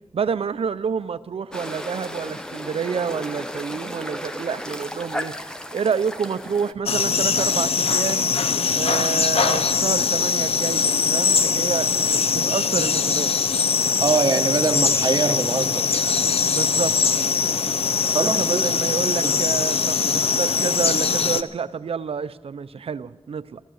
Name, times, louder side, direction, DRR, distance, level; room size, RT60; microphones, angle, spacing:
voice 1, 0.1-5.3 5.7-8.3 8.7-13.3 16.5-17.0 18.1-23.6, right 6 dB, 75° right, 0.5 m, -28 dB
sound 1, 1.5-6.7, equal, 5° left, 0.8 m, -34 dB
sound 2, 6.9-21.4, left 6 dB, 75° left, 0.6 m, -21 dB
voice 2, 14.0-16.0 18.1-18.7 19.2-19.4, right 4 dB, 40° right, 1.1 m, -23 dB
15.0 x 14.5 x 6.4 m
wide cardioid pair, 125°, 10 cm